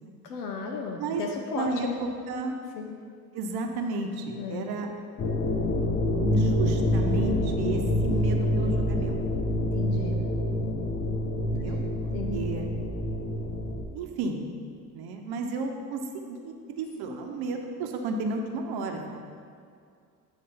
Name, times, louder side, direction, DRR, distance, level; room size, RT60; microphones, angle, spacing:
voice 1, 0.2-2.0 2.8-2.9 4.3-4.7 9.8-10.2 12.1-12.5 17.1-17.2, left 4 dB, 90° left, 1 dB, 0.6 m, -34 dB
voice 2, 1.5-2.6 3.3-4.9 6.2-9.2 11.5-11.8 12.3-12.7 13.9-14.4 14.9-19.2, right 3 dB, 55° right, 3 dB, 0.9 m, -32 dB
sound 1, 5.2-13.8, left 1 dB, 25° left, 0.5 m, -26 dB
7.7 x 3.2 x 5.5 m, 2.2 s
hypercardioid pair, 65°, 46 cm